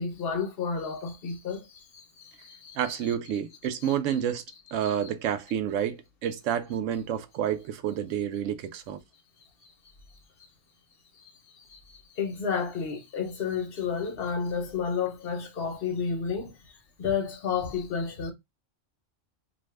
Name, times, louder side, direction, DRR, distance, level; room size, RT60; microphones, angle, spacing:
voice 1, 0.0-2.8 4.8-4.9 11.7-11.8 12.2-16.5 17.0-18.3, left 6 dB, 55° left, 0.9 m, -31 dB
voice 2, 2.8-4.4 4.7-9.0, right 9 dB, 75° right, 0.9 m, -29 dB
2.6 x 2.4 x 3.1 m
omnidirectional pair, 1.3 m